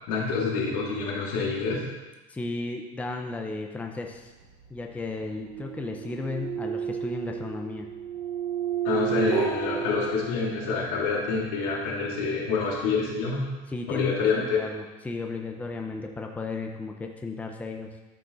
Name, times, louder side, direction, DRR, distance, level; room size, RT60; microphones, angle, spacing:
voice 1, 0.1-1.9 8.8-13.5 13.9-14.6, left 4 dB, 85° left, -4 dB, 2.7 m, -27 dB
voice 2, 2.3-4.3 4.7-7.9 13.7-14.2 14.5-17.9, left 3 dB, 5° left, 3 dB, 0.6 m, -34 dB
sound 1, 4.4-10.9, right 8 dB, 70° right, 2.5 m, -32 dB
12.5 x 5.0 x 3.9 m, 1.2 s
cardioid pair, 145°, 20 cm